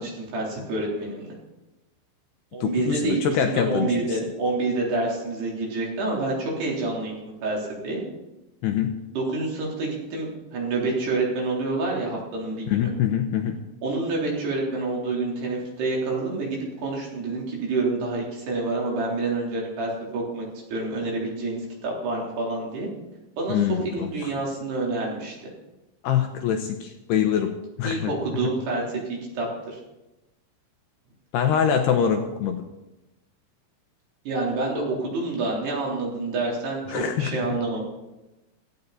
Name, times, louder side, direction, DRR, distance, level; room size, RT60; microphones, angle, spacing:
voice 1, 0.0-1.3 2.5-8.0 9.1-12.9 13.8-22.9 23.4-25.5 27.8-29.8 34.3-37.8, right 3 dB, 60° right, -3 dB, 5.7 m, -28 dB
voice 2, 2.6-3.9 8.6-8.9 12.7-13.6 23.5-24.3 26.0-27.5 27.8-28.1 31.3-32.6 36.9-37.3, left 8 dB, 75° left, 5 dB, 2.7 m, -24 dB
17.5 x 15.0 x 4.2 m, 0.97 s
omnidirectional pair, 5.5 m